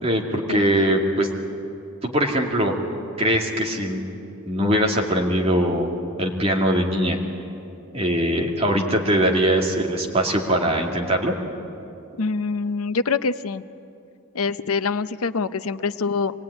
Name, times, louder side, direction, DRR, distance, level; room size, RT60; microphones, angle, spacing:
voice 1, 0.0-1.3 2.0-2.7 3.2-4.0 4.5-5.9 6.2-7.2 7.9-11.3, equal, 30° right, 0 dB, 2.5 m, -21 dB
voice 2, 12.2-13.6 14.3-16.3, left 4 dB, 85° left, 13 dB, 0.7 m, -25 dB
25.0 x 19.0 x 9.7 m, 2.7 s
head